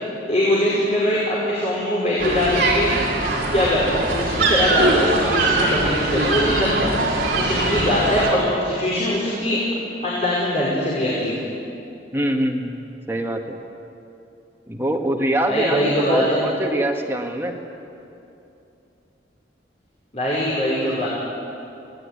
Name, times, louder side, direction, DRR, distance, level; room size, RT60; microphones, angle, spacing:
voice 1, 0.3-2.9 3.5-9.6 10.0-11.4 15.5-16.4 20.1-21.1, left 1 dB, 40° left, -6 dB, 5.4 m, -22 dB
sound 1, 2.2-8.3, right 2 dB, 55° right, 6.0 m, -22 dB
voice 2, 12.1-12.8 13.1-13.6 14.7-17.6, right 1 dB, 15° right, 2 dB, 1.9 m, -23 dB
27.0 x 18.5 x 9.9 m, 2.8 s
head